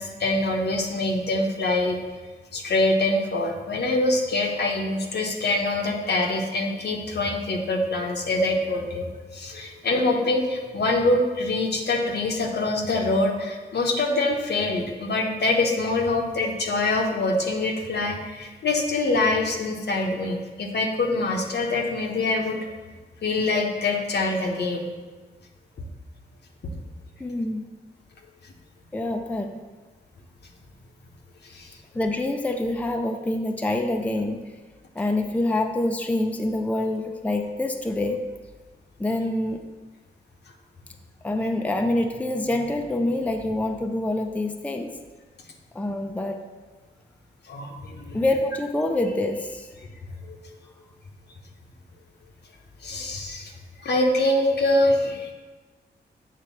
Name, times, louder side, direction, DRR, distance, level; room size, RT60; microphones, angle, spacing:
voice 1, 0.0-2.0 2.5-22.6 23.2-24.9 31.4-31.7 47.5-48.2 50.3-50.4 52.8-53.5 53.8-55.3, left 2 dB, 65° left, 1 dB, 1.1 m, -24 dB
voice 2, 27.2-27.7 28.9-29.6 31.9-34.5 35.0-38.3 39.0-39.6 41.2-45.0 45.7-46.4 48.1-49.7, left 1 dB, 10° left, 4 dB, 0.6 m, -26 dB
7.4 x 3.3 x 5.9 m, 1.3 s
cardioid pair, 65°, 18 cm